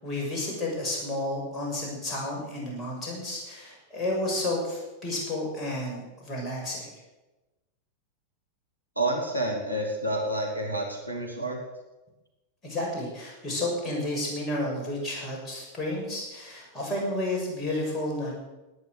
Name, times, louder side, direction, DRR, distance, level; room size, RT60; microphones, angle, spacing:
voice 1, 0.0-6.9 12.6-18.3, left 1 dB, 20° left, -3 dB, 6.6 m, -31 dB
voice 2, 9.0-11.6, right 1 dB, 90° right, 0 dB, 2.4 m, -29 dB
18.5 x 9.6 x 6.6 m, 1.1 s
figure-of-eight pair, 90°, 0 cm